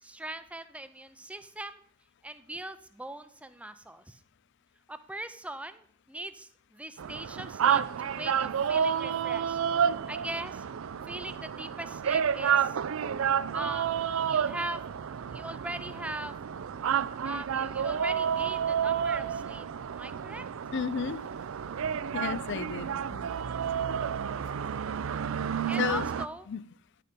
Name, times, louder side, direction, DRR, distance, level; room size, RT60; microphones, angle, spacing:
voice 1, 0.0-1.8 2.2-4.2 4.9-9.6 10.1-10.6 11.0-12.8 13.5-14.9 15.3-16.5 17.2-20.5 25.7-26.5, right 1 dB, 5° right, 11 dB, 0.5 m, -40 dB
sound 1, 7.0-26.3, right 8 dB, 70° right, 0.4 m, -30 dB
voice 2, 20.7-21.3 22.1-23.2 25.8-26.1 26.5-26.6, left 7 dB, 55° left, 19 dB, 0.4 m, -32 dB
10.0 x 6.8 x 5.1 m, 0.62 s
head